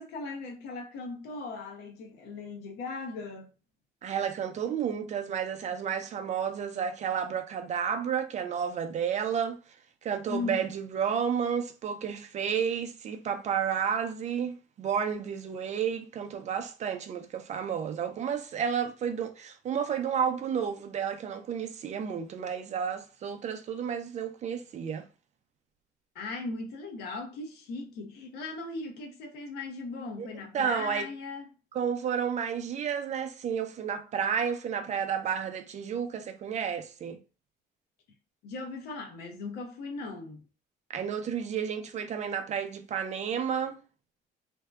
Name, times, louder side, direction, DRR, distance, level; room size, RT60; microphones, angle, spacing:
voice 1, 0.0-3.5 10.3-10.7 26.1-31.5 38.4-40.5, left 3 dB, 80° left, 0.7 m, -38 dB
voice 2, 4.0-9.6 10.0-25.1 30.2-30.3 30.5-31.1 31.7-37.2 40.9-43.8, right 7 dB, 45° right, 0.4 m, -31 dB
2.6 x 2.2 x 2.3 m
cardioid pair, 110°, 17 cm